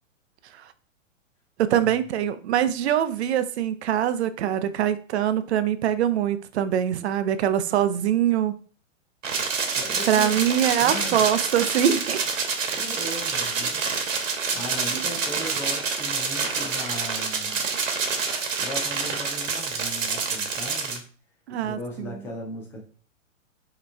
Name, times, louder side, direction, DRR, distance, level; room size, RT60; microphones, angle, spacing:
voice 1, 1.6-8.5 10.1-12.2 12.6-12.8 14.9-15.0 21.5-22.2, right 10 dB, 55° right, 0.6 m, -23 dB
sound 1, 9.2-21.0, right 5 dB, 75° right, 1.2 m, -27 dB
voice 2, 9.8-10.4 10.8-11.2 12.7-13.9 14.2-17.6 18.6-21.1 21.6-22.9, left 1 dB, 5° left, 0.3 m, -38 dB
5.0 x 3.1 x 3.3 m
hypercardioid pair, 125°, 39 cm